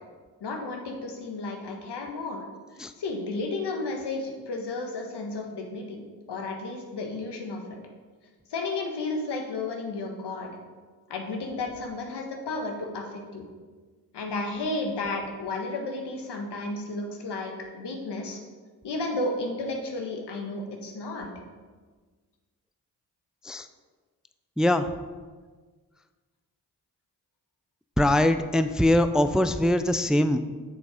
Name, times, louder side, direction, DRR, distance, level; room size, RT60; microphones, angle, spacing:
voice 1, 0.4-2.4 3.0-6.0 6.3-7.6 8.5-10.5 11.1-13.4 14.1-18.4 18.8-21.3, left 2 dB, 80° left, 2 dB, 1.4 m, -32 dB
voice 2, 24.6-24.9 28.0-30.4, left 1 dB, ahead, 10 dB, 0.4 m, -22 dB
6.7 x 6.6 x 4.9 m, 1.4 s
supercardioid pair, 40°, 40 cm